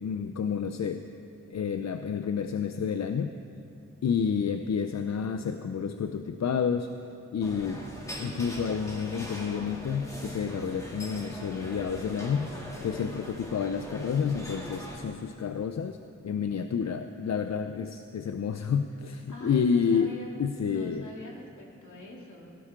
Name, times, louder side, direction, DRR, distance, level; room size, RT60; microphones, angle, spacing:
voice 1, 0.0-1.0 1.5-3.3 4.0-6.9 7.3-7.8 8.2-16.0 16.2-21.1, left 6 dB, 60° left, 8 dB, 0.5 m, -30 dB
sound 1, 7.4-15.0, equal, 10° left, 2.7 m, -41 dB
voice 2, 19.3-20.4 20.6-22.5, left 1 dB, 75° left, -2 dB, 2.7 m, -43 dB
17.5 x 16.5 x 3.8 m, 2.8 s
wide cardioid pair, 95°, 30 cm